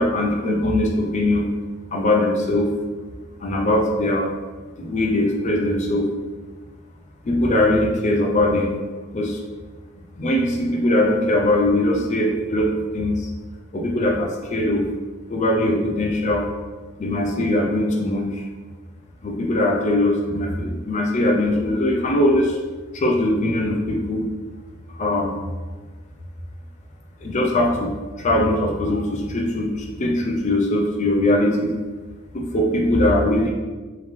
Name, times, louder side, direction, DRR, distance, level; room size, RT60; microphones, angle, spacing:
voice 1, 0.0-1.5 1.9-2.7 3.4-4.3 4.8-6.1 7.2-8.7 9.1-9.4 10.2-13.3 13.7-14.9 15.3-16.5 17.0-18.5 19.2-22.6 22.9-24.2 24.9-25.4 27.2-31.7 32.3-33.5, left 1 dB, 35° left, 0 dB, 0.4 m, -21 dB
3.5 x 3.3 x 3.2 m, 1.3 s
head